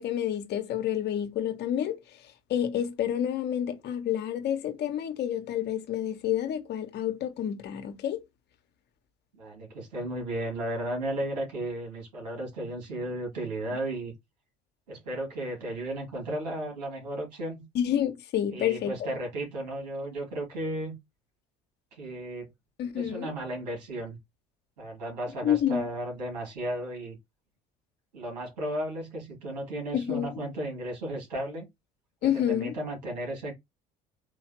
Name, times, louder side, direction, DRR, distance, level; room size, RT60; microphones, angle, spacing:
voice 1, 0.0-1.9 2.5-8.2 17.7-18.9 22.8-23.3 25.4-25.8 29.9-30.3 32.2-32.8, left 10 dB, 55° left, 1.2 m, -29 dB
voice 2, 9.3-14.1 14.9-17.7 18.5-21.0 21.9-22.5 22.9-24.2 24.8-27.2 28.1-31.7 32.5-33.5, right 1 dB, 90° right, 2.7 m, -34 dB
4.8 x 3.1 x 3.0 m
hypercardioid pair, 70°, 21 cm